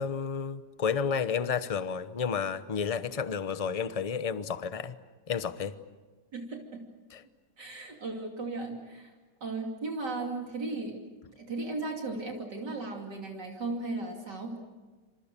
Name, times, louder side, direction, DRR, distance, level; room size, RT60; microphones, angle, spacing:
voice 1, 0.0-4.9 5.3-5.7 7.1-7.2, left 6 dB, 30° left, 12 dB, 0.7 m, -31 dB
voice 2, 6.3-6.8 7.6-9.1 9.4-11.0 11.4-14.6, right 3 dB, 75° right, 1 dB, 3.3 m, -36 dB
27.5 x 26.5 x 6.8 m, 1.3 s
omnidirectional pair, 1.9 m